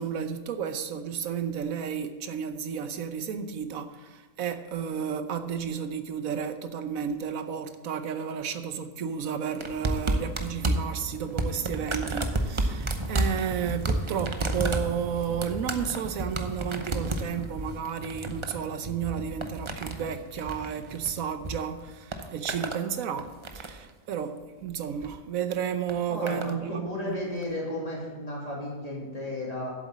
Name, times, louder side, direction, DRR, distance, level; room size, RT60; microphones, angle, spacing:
voice 1, 0.0-27.2, right 8 dB, 90° right, 1.2 m, -32 dB
sound 1, 9.6-21.5 21.8-22.8 23.2-23.9 24.8-25.1 25.9-26.5 27.4-27.5, right 2 dB, 30° right, 0.6 m, -31 dB
voice 2, 26.1-29.7, left 1 dB, 25° left, 3.0 m, -34 dB
8.0 x 7.8 x 7.3 m
omnidirectional pair, 1.4 m